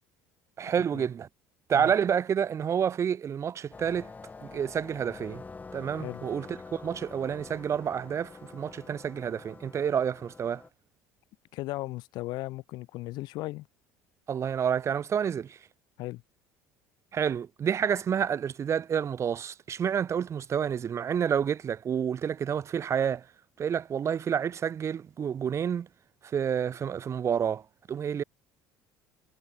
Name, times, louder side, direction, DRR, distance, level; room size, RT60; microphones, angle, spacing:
voice 1, 0.6-1.3 1.7-4.1 4.4-5.4 5.7-10.6 14.3-15.6 17.1-23.3 23.6-25.9 26.2-27.6 27.9-28.2, right 8 dB, 40° right, 0.6 m, -29 dB
sound 1, 3.7-10.7, left 4 dB, 20° left, 0.7 m, -46 dB
voice 2, 11.5-13.7 16.0-16.2, left 19 dB, 65° left, 0.5 m, -36 dB
supercardioid pair, 80°, 8 cm